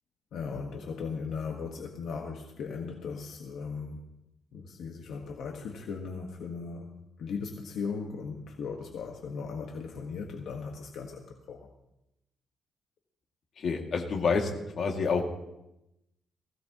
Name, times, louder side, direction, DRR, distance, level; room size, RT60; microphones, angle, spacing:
voice 1, 0.3-4.0 4.5-11.7, left 5 dB, 75° left, 1 dB, 1.5 m, -38 dB
voice 2, 13.6-14.5 14.8-15.2, left 5 dB, 55° left, 1 dB, 2.3 m, -27 dB
20.0 x 16.0 x 3.0 m, 0.89 s
cardioid pair, 115°, 0 cm